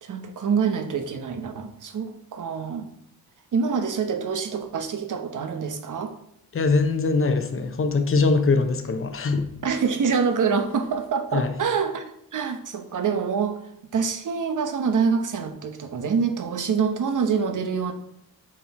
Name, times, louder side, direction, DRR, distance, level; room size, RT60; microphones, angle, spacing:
voice 1, 0.0-2.9 3.5-6.1 9.6-12.0 12.3-13.6 13.9-17.9, right 6 dB, 50° right, 7 dB, 1.0 m, -26 dB
voice 2, 6.5-9.5 11.3-11.5, left 3 dB, 35° left, 7 dB, 0.9 m, -22 dB
7.4 x 4.5 x 4.3 m, 0.74 s
cardioid pair, 95°, 39 cm